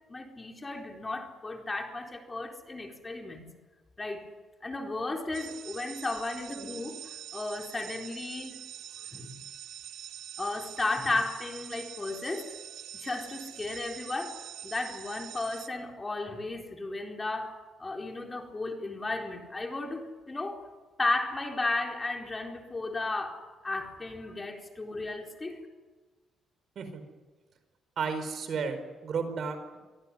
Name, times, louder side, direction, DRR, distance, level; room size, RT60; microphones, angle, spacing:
voice 1, 0.1-3.5 4.0-4.3 4.6-8.6 9.1-9.4 10.4-12.6 12.9-20.7 21.0-25.6, left 2 dB, 25° left, 4.1 m, -34 dB
sound 1, 5.3-15.7, right 11 dB, 80° right, 1.4 m, -45 dB
voice 2, 28.0-29.8, right 5 dB, 60° right, 4.9 m, -33 dB
25.0 x 18.0 x 10.0 m
cardioid pair, 90°, 0 cm